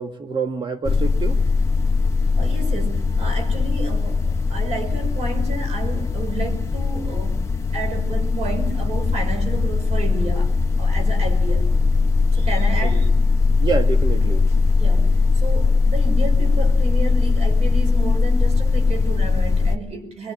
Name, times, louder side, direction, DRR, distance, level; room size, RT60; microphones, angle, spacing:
voice 1, 0.0-1.4 12.8-12.9 13.6-14.5, right 4 dB, 45° right, 1.7 m, -26 dB
sound 1, 0.9-19.8, left 4 dB, 25° left, 1.4 m, -19 dB
voice 2, 2.4-7.5 7.7-10.5 10.8-11.7 12.3-13.1 14.8-20.3, right 3 dB, 70° right, 4.8 m, -31 dB
22.5 x 22.0 x 7.6 m
wide cardioid pair, 135°, 11 cm